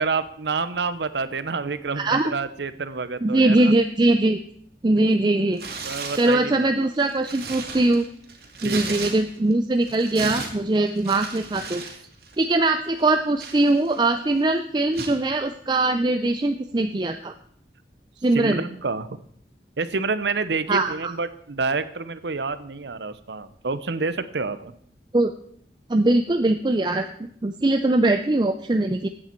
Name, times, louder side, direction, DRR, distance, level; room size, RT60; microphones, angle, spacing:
voice 1, 0.0-3.7 5.8-6.7 8.6-9.0 18.3-19.2 19.8-24.7, right 4 dB, 80° right, 14 dB, 0.8 m, -28 dB
voice 2, 1.9-2.3 3.2-4.4 4.8-5.6 6.1-8.0 8.6-11.8 12.4-17.3 18.2-18.6 20.7-21.1 25.1-25.3 25.9-27.0 27.4-29.1, right 2 dB, 25° right, 7 dB, 0.5 m, -21 dB
Tearing, 5.5-6.4 6.9-9.5 9.8-12.0 12.2-12.5 13.0-14.1 14.9-15.2, right 4 dB, 60° right, 2.4 m, -35 dB
15.5 x 8.8 x 4.5 m, 0.64 s
head